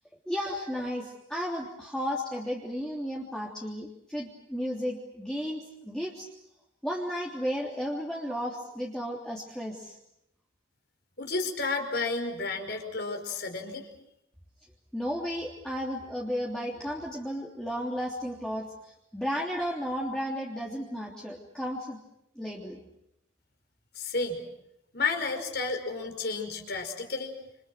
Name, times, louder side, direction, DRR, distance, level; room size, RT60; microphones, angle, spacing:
voice 1, 0.2-6.3 6.8-10.0 14.9-22.0 22.3-22.8, equal, 5° left, -3 dB, 3.2 m, -34 dB
voice 2, 11.2-13.9 24.0-24.4 24.9-27.4, left 3 dB, 55° left, 4 dB, 5.3 m, -31 dB
28.5 x 28.5 x 6.4 m, 0.81 s
head